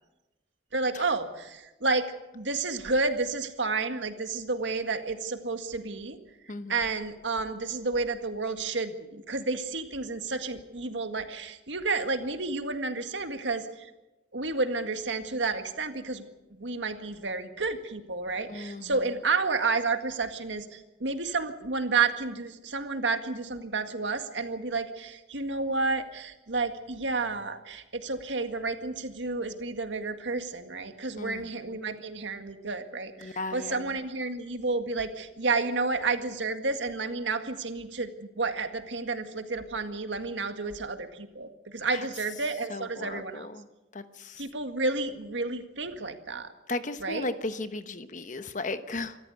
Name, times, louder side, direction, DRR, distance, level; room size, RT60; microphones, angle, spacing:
voice 1, 0.7-6.2 6.7-13.9 14.3-43.5 44.4-46.5 47.0-47.3, right 3 dB, 85° right, 7 dB, 1.9 m, -31 dB
voice 2, 18.5-18.8 31.2-31.5 33.2-33.9 41.9-42.0 42.7-43.6 43.9-44.4 46.7-49.2, left 2 dB, 45° left, 10 dB, 1.1 m, -35 dB
26.0 x 13.5 x 8.0 m, 1.0 s
head